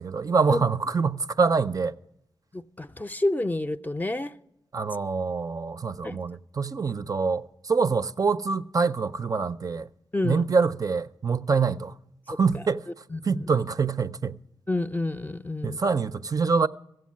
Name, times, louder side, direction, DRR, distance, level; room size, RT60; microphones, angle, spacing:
voice 1, 0.0-1.9 4.7-9.9 10.2-12.0 12.3-12.8 13.2-14.4 15.6-16.7, right 5 dB, 45° right, 0.4 m, -25 dB
voice 2, 2.5-4.3 6.0-6.2 10.1-10.4 13.1-13.5 14.7-15.8, left 2 dB, 20° left, 0.4 m, -29 dB
15.5 x 7.7 x 7.4 m
wide cardioid pair, 85°, 9 cm